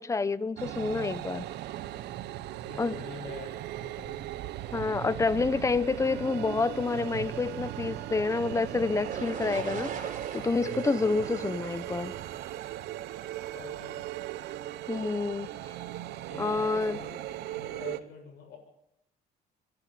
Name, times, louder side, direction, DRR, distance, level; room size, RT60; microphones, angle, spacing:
voice 1, 0.0-1.4 2.8-2.9 4.7-12.1 14.9-15.5 16.4-17.0, left 4 dB, 20° left, 0.9 m, -28 dB
sound 1, 0.6-18.0, right 13 dB, 80° right, 1.0 m, -38 dB
voice 2, 2.6-4.2 13.5-14.1 16.3-18.6, left 5 dB, 75° left, 7.6 m, -46 dB
sound 2, 9.0-12.9, right 6 dB, 50° right, 4.0 m, -40 dB
25.5 x 11.5 x 9.3 m
cardioid pair, 110°, 17 cm